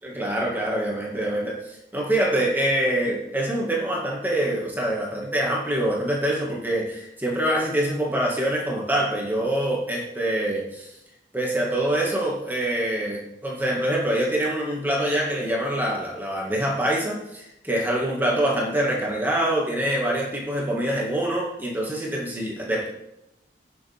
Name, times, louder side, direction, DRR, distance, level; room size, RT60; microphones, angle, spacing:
voice 1, 0.0-1.6 1.9-10.9 11.3-22.9, right 1 dB, 10° right, -3 dB, 2.0 m, -25 dB
17.0 x 7.2 x 3.6 m, 0.84 s
head